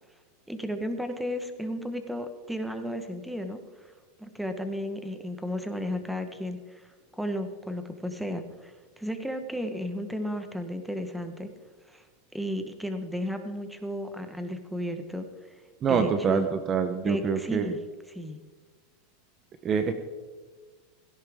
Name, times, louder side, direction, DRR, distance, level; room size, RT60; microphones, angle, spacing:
voice 1, 0.5-3.6 4.2-6.9 7.1-11.5 11.9-12.0 12.3-15.3 15.9-16.5 17.0-17.8 18.1-18.4, equal, ahead, 7 dB, 1.2 m, -34 dB
voice 2, 15.8-17.7 19.6-19.9, right 6 dB, 25° right, 9 dB, 0.9 m, -25 dB
17.0 x 16.5 x 3.6 m, 1.4 s
supercardioid pair, 150°, 0 cm